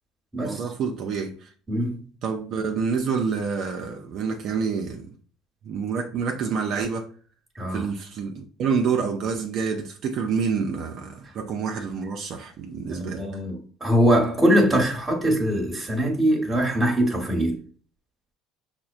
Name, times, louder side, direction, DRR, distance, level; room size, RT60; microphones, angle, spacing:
voice 1, 0.4-1.5 2.2-5.1 5.6-7.1 7.7-13.2, right 5 dB, 55° right, 0.5 m, -28 dB
voice 2, 1.7-2.0 7.5-7.9 12.8-17.6, equal, 15° right, 1.2 m, -22 dB
5.8 x 2.1 x 2.5 m
supercardioid pair, 105°, 0 cm